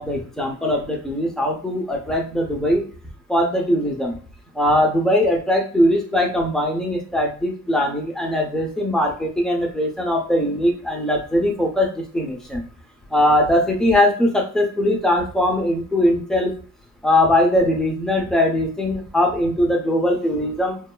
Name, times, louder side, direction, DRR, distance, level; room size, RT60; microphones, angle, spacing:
voice 1, 0.0-2.9 3.3-4.2 4.5-12.6 13.1-16.5 17.0-20.8, left 1 dB, ahead, 0 dB, 0.6 m, -20 dB
2.7 x 2.3 x 2.2 m, 0.40 s
cardioid pair, 90°, 30 cm